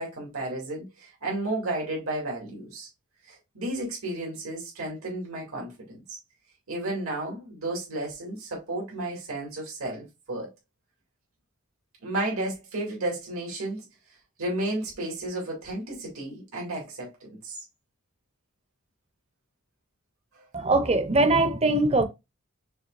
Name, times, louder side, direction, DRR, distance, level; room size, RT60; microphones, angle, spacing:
voice 1, 0.0-2.9 3.3-6.2 6.7-10.5 12.0-13.9 14.4-17.6, right 2 dB, 75° right, 2.4 m, -33 dB
voice 2, 20.5-22.1, right 2 dB, 30° right, 0.7 m, -21 dB
6.2 x 3.2 x 2.5 m
head